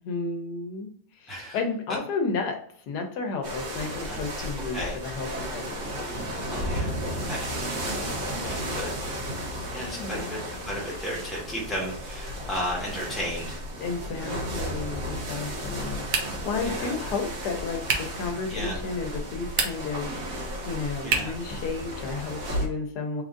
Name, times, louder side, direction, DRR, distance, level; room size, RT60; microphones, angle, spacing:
voice 1, 0.0-5.9 8.0-8.5 9.7-10.4 13.8-23.2, left 4 dB, 90° left, 4 dB, 1.3 m, -33 dB
sound 1, 3.4-22.7, equal, 75° right, 1.5 m, -34 dB
voice 2, 6.5-6.9 7.2-7.5 8.4-8.9 9.7-10.4 10.6-13.6 16.6-16.9 18.5-18.8 21.0-21.3, equal, ahead, -4 dB, 0.9 m, -34 dB
sound 2, 16.1-16.6 17.8-18.2 19.4-20.0 21.1-21.5, right 5 dB, 60° right, 0.8 m, -28 dB
3.7 x 2.5 x 3.6 m, 0.63 s
omnidirectional pair, 1.7 m